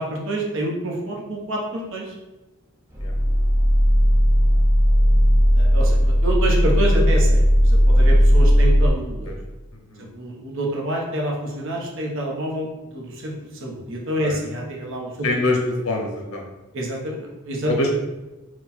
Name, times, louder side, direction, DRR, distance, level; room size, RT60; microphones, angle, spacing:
voice 1, 0.0-2.1 5.5-9.3 10.0-12.7 12.9-15.3 16.7-17.7, right 1 dB, 60° right, -1 dB, 0.9 m, -27 dB
sound 1, 2.9-8.9, equal, 10° right, 0.7 m, -16 dB
voice 2, 15.2-15.6 15.8-16.4 17.7-18.0, left 2 dB, 80° left, 1 dB, 0.9 m, -24 dB
4.5 x 2.3 x 4.1 m, 1.1 s
head